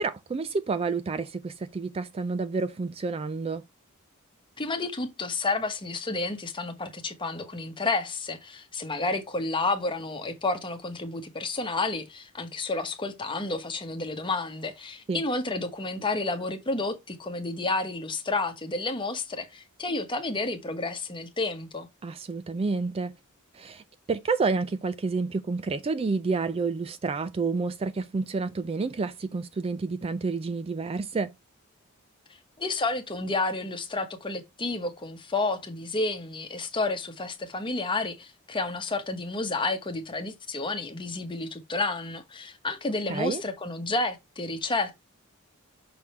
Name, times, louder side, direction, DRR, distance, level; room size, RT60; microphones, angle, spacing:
voice 1, 0.0-3.6 15.1-15.2 22.0-23.1 23.5-31.3 43.1-43.4, right 4 dB, 25° right, 0.3 m, -29 dB
voice 2, 4.6-21.9 32.6-45.1, left 3 dB, 25° left, 1.0 m, -30 dB
6.1 x 3.6 x 4.3 m
head